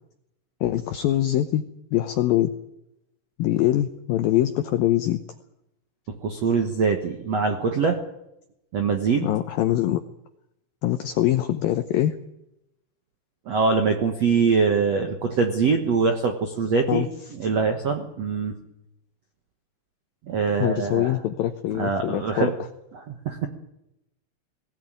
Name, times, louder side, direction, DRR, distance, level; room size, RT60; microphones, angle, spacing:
voice 1, 0.6-1.6 1.9-2.5 3.4-5.2 9.2-10.0 10.8-12.1 16.9-17.1 20.6-22.5, left 13 dB, 85° left, 9 dB, 2.0 m, -23 dB
voice 2, 6.2-8.0 8.7-9.3 13.5-17.1 17.4-18.5 20.3-21.1 21.7-22.5 22.9-23.5, right 5 dB, 70° right, 4 dB, 1.5 m, -23 dB
20.0 x 16.5 x 9.1 m, 0.86 s
omnidirectional pair, 5.4 m